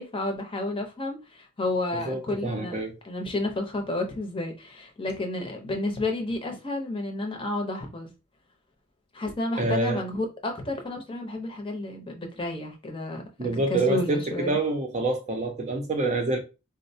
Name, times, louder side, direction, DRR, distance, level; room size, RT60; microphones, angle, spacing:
voice 1, 0.0-8.1 9.1-14.6, left 2 dB, 25° left, 0.7 m, -31 dB
voice 2, 1.9-3.0 9.6-10.0 13.4-16.4, right 2 dB, 35° right, 0.6 m, -27 dB
4.0 x 2.1 x 2.6 m
head